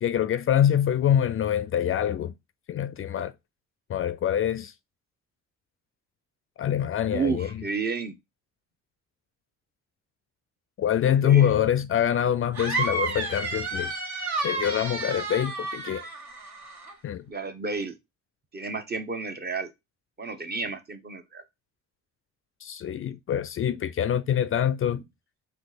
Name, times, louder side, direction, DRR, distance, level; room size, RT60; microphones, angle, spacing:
voice 1, 0.0-2.3 2.7-3.3 3.9-4.7 6.6-7.5 10.8-13.9 14.4-16.1 17.0-17.2 22.6-25.0, left 10 dB, 45° left, 0.4 m, -25 dB
voice 2, 7.1-8.2 11.1-11.5 17.3-17.9 18.5-19.7 20.2-21.4, right 4 dB, 30° right, 0.9 m, -31 dB
sound 1, 12.5-16.9, right 2 dB, 65° right, 1.7 m, -31 dB
4.4 x 2.8 x 4.0 m
cardioid pair, 90°, 30 cm